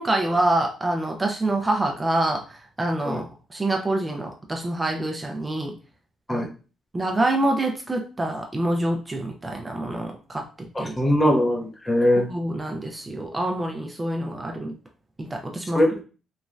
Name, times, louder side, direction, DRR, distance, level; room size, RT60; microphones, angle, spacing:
voice 1, 0.0-5.8 6.3-6.5 6.9-10.9 12.2-14.8 15.2-15.8, right 1 dB, 20° right, 2 dB, 0.4 m, -26 dB
voice 2, 10.7-12.3 15.7-16.0, left 1 dB, 20° left, 1 dB, 0.7 m, -21 dB
3.0 x 2.2 x 2.5 m, 0.35 s
cardioid pair, 90°, 0 cm